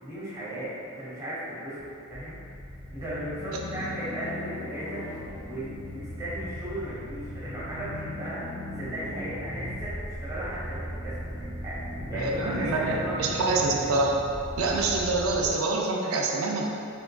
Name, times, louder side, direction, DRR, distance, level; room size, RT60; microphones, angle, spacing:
voice 1, 0.0-2.4 2.9-5.1 5.4-11.3 11.6-13.8, right 1 dB, 15° right, -11 dB, 1.1 m, -36 dB
sound 1, 1.8-15.5, left 1 dB, 35° left, 0.7 m, -38 dB
voice 2, 12.1-14.1 14.6-16.6, right 3 dB, 75° right, 0 dB, 0.4 m, -26 dB
3.6 x 3.3 x 2.2 m, 2.5 s
head